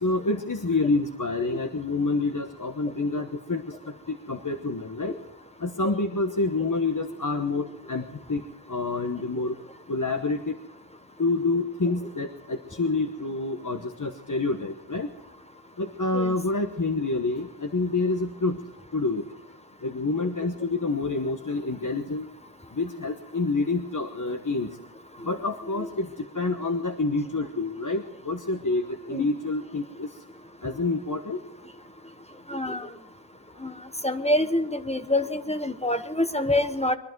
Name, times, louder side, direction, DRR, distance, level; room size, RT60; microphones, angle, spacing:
voice 1, 0.0-3.7 4.1-5.1 5.6-8.4 8.7-9.5 9.9-10.6 11.2-15.1 15.8-18.6 18.9-19.2 19.8-22.3 22.7-24.7 25.2-26.1 26.3-30.1 30.6-31.4, left 3 dB, 45° left, 5 dB, 1.2 m, -27 dB
voice 2, 32.5-32.9 33.6-33.7 34.0-37.0, left 1 dB, 15° left, 8 dB, 1.2 m, -26 dB
22.5 x 12.0 x 4.7 m, 0.86 s
wide cardioid pair, 50°, 43 cm